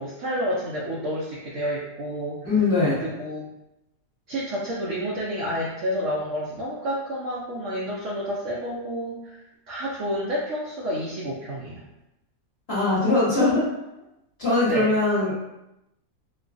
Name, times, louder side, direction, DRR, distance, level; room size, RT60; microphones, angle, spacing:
voice 1, 0.0-2.6 2.9-3.5 4.3-9.4 9.7-11.8 14.7-14.9, equal, 65° right, -6 dB, 0.8 m, -30 dB
voice 2, 2.4-2.9 12.7-13.7 14.4-15.3, left 2 dB, 40° left, -10 dB, 1.3 m, -21 dB
3.1 x 2.2 x 2.5 m, 0.91 s
omnidirectional pair, 1.7 m